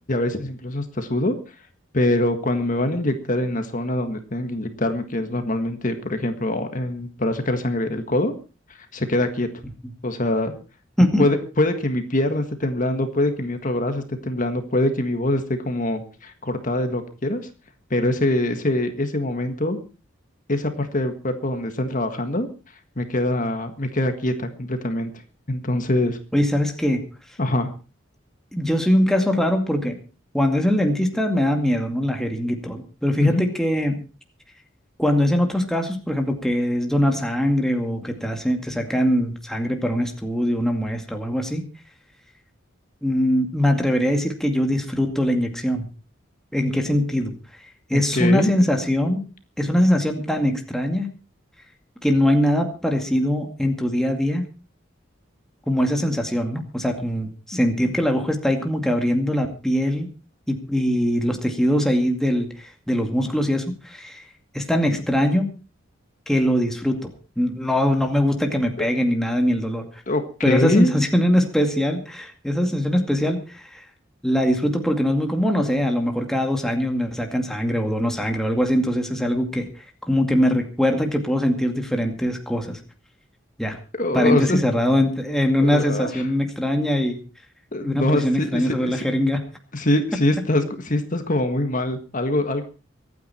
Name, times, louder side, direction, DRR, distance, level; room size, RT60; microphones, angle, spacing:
voice 1, 0.1-1.3 1.9-8.3 8.7-9.5 10.0-10.5 11.2-17.4 17.9-19.8 20.5-22.5 23.0-25.1 25.5-26.2 27.4-27.7 33.2-33.4 47.9-48.5 68.8-68.9 70.1-70.9 83.9-84.6 85.6-86.2 87.7-89.0 89.7-92.6, left 1 dB, 40° left, 7 dB, 1.7 m, -23 dB
voice 2, 26.3-27.0 28.5-30.0 30.3-34.0 35.0-41.7 43.0-45.9 46.5-47.3 47.9-49.2 49.6-51.1 52.0-54.4 55.7-60.1 60.5-62.5 62.9-64.2 64.5-65.5 66.3-69.8 70.4-73.8 74.2-79.7 80.1-82.8 83.6-83.8 84.1-87.2 87.8-89.4, equal, 5° left, 3 dB, 2.2 m, -22 dB
24.5 x 9.5 x 4.4 m, 0.34 s
head